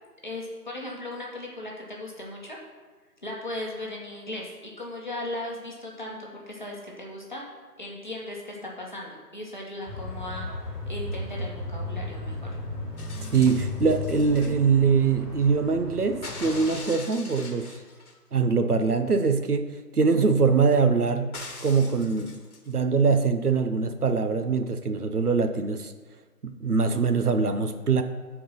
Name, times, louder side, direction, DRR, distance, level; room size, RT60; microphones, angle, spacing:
voice 1, 0.2-2.6 3.2-7.4 7.8-10.5 10.8-12.5, left 1 dB, 30° left, -3 dB, 1.2 m, -37 dB
sound 1, 9.9-16.8, left 2 dB, ahead, 0.9 m, -35 dB
sound 2, 13.0-14.5 16.2-18.2 21.3-22.7 24.0-24.1, left 3 dB, 65° left, 1.3 m, -42 dB
voice 2, 13.3-17.7 18.3-21.3 21.6-22.3 22.7-25.9 26.4-28.0, right 5 dB, 65° right, 7 dB, 0.9 m, -23 dB
10.5 x 4.6 x 5.8 m, 1.4 s
figure-of-eight pair, 175°, 48 cm